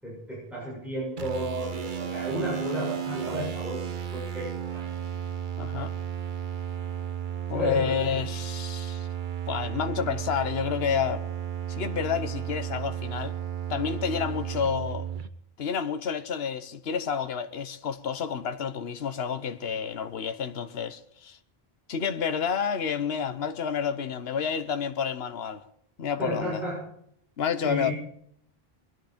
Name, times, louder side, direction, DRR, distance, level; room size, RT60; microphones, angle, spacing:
voice 1, 0.0-3.9 4.1-4.8 7.5-8.2 26.2-26.8 27.6-27.9, equal, ahead, 7.5 m, -33 dB
sound 1, 1.2-15.3, right 9 dB, 55° right, 1.1 m, -34 dB
voice 2, 5.6-5.9 7.5-9.1 9.5-11.2 11.7-13.3 13.7-15.1 15.6-21.4 21.9-25.7 26.0-26.6 27.4-27.9, left 7 dB, 75° left, 1.2 m, -29 dB
23.0 x 11.0 x 5.1 m
omnidirectional pair, 1.1 m